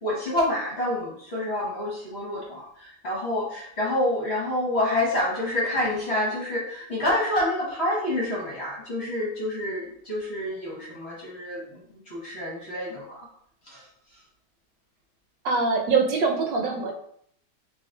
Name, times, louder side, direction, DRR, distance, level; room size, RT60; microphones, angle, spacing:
voice 1, 0.0-13.3 13.6-13.9 14.1-14.2, left 1 dB, 40° left, -5 dB, 1.2 m, -28 dB
voice 2, 15.4-16.9, right 4 dB, 70° right, 2 dB, 1.3 m, -23 dB
4.0 x 3.0 x 3.8 m, 0.65 s
omnidirectional pair, 2.2 m